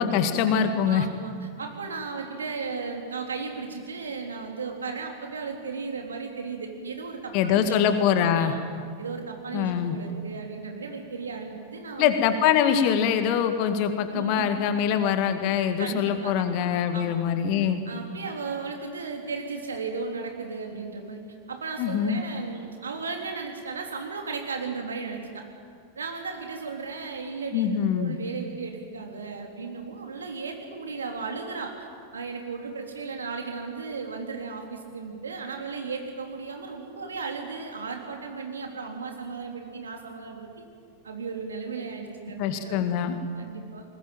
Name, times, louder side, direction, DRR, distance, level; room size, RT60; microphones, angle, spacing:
voice 1, 0.0-1.1 7.3-8.5 9.5-10.0 12.0-17.8 21.8-22.2 27.5-28.2 42.4-43.2, left 8 dB, 45° left, 8 dB, 2.0 m, -24 dB
voice 2, 0.9-7.8 8.2-8.6 9.0-12.2 14.1-14.5 15.8-16.5 16.9-17.2 17.8-21.2 21.5-25.4 25.9-31.9 32.1-40.6 41.0-42.8 43.3-43.8, right 4 dB, 70° right, 3 dB, 3.4 m, -35 dB
20.5 x 20.0 x 9.0 m, 2.2 s
figure-of-eight pair, 90°, 0 cm